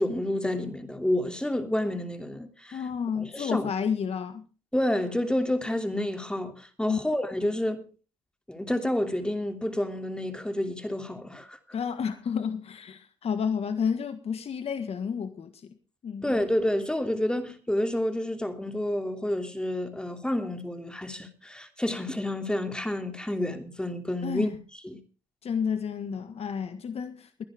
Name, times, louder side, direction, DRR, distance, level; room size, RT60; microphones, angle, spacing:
voice 1, 0.0-2.8 3.2-3.7 4.7-7.8 8.5-11.6 16.2-24.6 24.8-25.0, left 1 dB, 5° left, 2.8 m, -29 dB
voice 2, 2.7-4.4 6.9-7.0 11.7-15.5 16.0-16.4 24.2-24.5 25.4-27.4, left 7 dB, 50° left, 1.6 m, -30 dB
23.0 x 10.0 x 3.6 m
hypercardioid pair, 55°, 13 cm